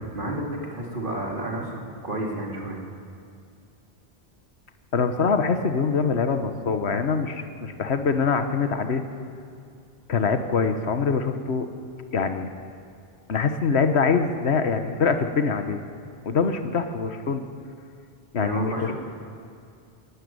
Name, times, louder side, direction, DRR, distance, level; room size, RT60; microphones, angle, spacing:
voice 1, 0.0-2.8 18.3-18.9, right 1 dB, 50° right, -1 dB, 3.4 m, -31 dB
voice 2, 4.9-9.0 10.1-11.7 12.1-12.5 13.3-15.8 16.2-17.4 18.3-18.9, left 5 dB, 75° left, 8 dB, 1.5 m, -24 dB
28.0 x 11.5 x 9.6 m, 2.4 s
omnidirectional pair, 1.1 m